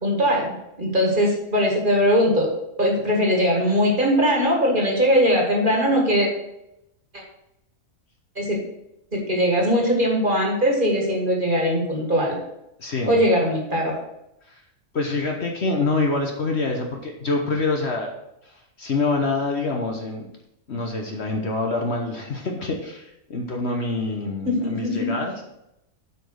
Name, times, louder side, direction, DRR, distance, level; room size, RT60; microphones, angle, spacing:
voice 1, 0.0-2.5 2.8-6.3 8.4-8.6 9.1-12.4 13.1-13.9 24.4-25.1, equal, 35° right, -1 dB, 2.0 m, -20 dB
voice 2, 12.8-13.2 14.4-14.6 14.9-18.1 18.4-20.3 20.7-25.4, left 3 dB, 50° left, 2 dB, 1.2 m, -26 dB
7.8 x 5.1 x 6.4 m, 0.85 s
omnidirectional pair, 1.5 m